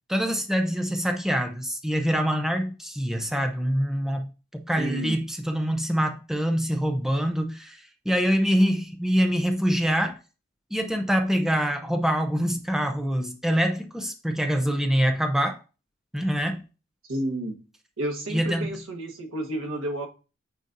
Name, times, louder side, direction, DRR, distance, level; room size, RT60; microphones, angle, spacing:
voice 1, 0.1-4.3 4.5-10.2 10.7-15.6 16.1-16.6 18.3-18.7, equal, ahead, 0.6 m, -25 dB
voice 2, 4.8-5.2 17.1-17.6 18.0-20.1, right 1 dB, 80° right, 1.4 m, -31 dB
9.1 x 4.0 x 2.6 m
head